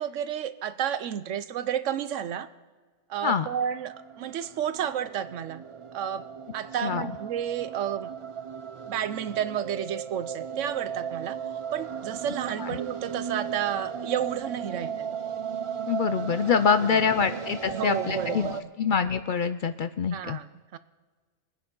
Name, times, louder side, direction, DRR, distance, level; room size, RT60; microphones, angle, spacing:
voice 1, 0.0-2.5 3.1-5.6 5.9-6.3 6.5-8.1 8.9-11.4 11.7-15.1 16.8-17.1 17.6-18.5 20.1-20.5 20.7-20.8, right 9 dB, 90° right, 14 dB, 1.0 m, -31 dB
sound 1, 3.1-18.6, right 7 dB, 45° right, 0.4 m, -36 dB
voice 2, 15.9-18.5 18.8-20.4, left 6 dB, 60° left, 10 dB, 0.5 m, -25 dB
23.0 x 9.7 x 3.8 m, 1.4 s
omnidirectional pair, 1.3 m